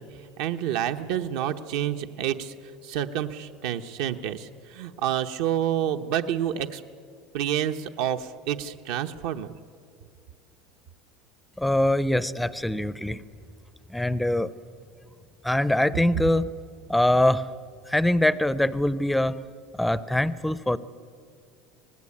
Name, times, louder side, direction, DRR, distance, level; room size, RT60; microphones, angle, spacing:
voice 1, 0.0-6.8 7.3-9.5, right 10 dB, 70° right, 7 dB, 0.9 m, -29 dB
voice 2, 11.6-13.2 13.9-14.5 15.4-16.5 16.9-17.5 17.9-19.3 19.7-20.8, left 1 dB, ahead, 16 dB, 0.5 m, -23 dB
25.0 x 19.0 x 8.5 m, 2.3 s
cardioid pair, 165°, 0 cm